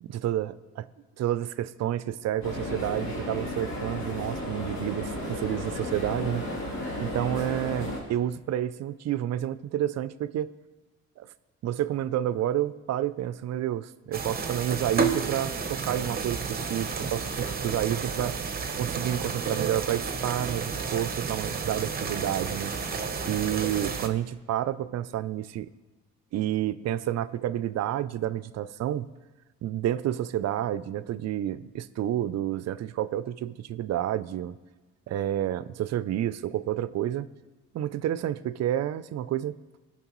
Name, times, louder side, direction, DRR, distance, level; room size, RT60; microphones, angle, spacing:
voice 1, 0.0-0.9 1.2-6.4 7.0-10.5 11.2-11.3 11.6-18.4 18.8-22.7 23.2-25.7 26.3-29.1 29.6-34.5 35.1-37.3 37.7-39.6, right 12 dB, 60° right, 16 dB, 0.5 m, -30 dB
sound 1, 2.4-8.0, left 1 dB, 75° left, 2.9 m, -33 dB
sound 2, 14.1-24.1, right 5 dB, 30° right, 0.9 m, -31 dB
16.5 x 5.9 x 3.1 m, 1.2 s
cardioid pair, 90°, 30 cm